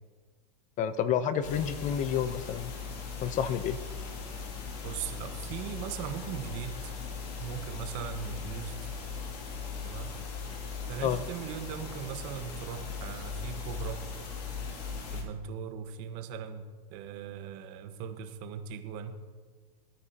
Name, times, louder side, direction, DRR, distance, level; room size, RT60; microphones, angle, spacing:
voice 1, 0.8-2.7 3.2-3.8 11.0-11.2, left 8 dB, 40° left, 13 dB, 0.7 m, -29 dB
sound 1, 1.4-15.2, left 5 dB, 75° left, 2.8 m, -39 dB
voice 2, 4.8-6.9 7.4-8.9 9.8-10.1 10.9-14.1 15.1-19.2, right 8 dB, 55° right, 7 dB, 1.4 m, -39 dB
18.5 x 9.6 x 2.9 m, 1.5 s
supercardioid pair, 120°, 20 cm